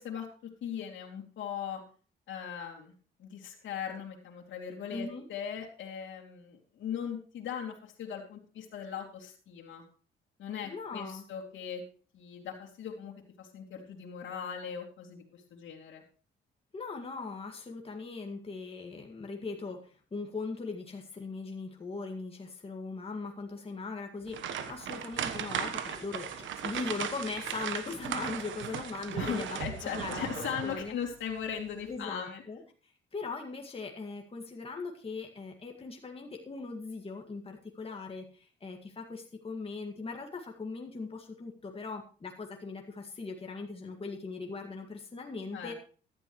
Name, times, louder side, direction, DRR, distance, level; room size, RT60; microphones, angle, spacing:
voice 1, 0.0-1.8 2.3-2.9 3.2-9.8 10.4-11.8 12.1-16.0 29.2-32.4 45.5-45.7, left 8 dB, 70° left, -2 dB, 2.8 m, -39 dB
voice 2, 4.9-5.3 10.6-11.2 16.7-30.9 31.9-32.6 33.1-45.7, left 4 dB, 30° left, 2 dB, 2.0 m, -40 dB
sound 1, 24.3-30.9 31.3-31.5 31.9-32.0, right 8 dB, 75° right, 1.2 m, -37 dB
14.5 x 11.5 x 3.2 m, 0.39 s
cardioid pair, 90°, 20 cm